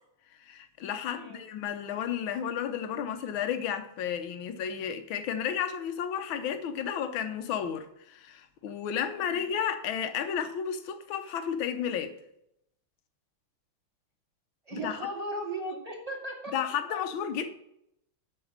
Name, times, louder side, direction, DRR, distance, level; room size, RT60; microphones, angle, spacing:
voice 1, 0.4-12.1 14.7-15.0 16.5-17.5, left 8 dB, 70° left, 1.6 m, -32 dB
voice 2, 1.1-1.4 9.1-9.4 14.7-16.5 16.9-17.0, right 1 dB, 15° right, 2.4 m, -37 dB
8.0 x 6.2 x 7.4 m
omnidirectional pair, 2.4 m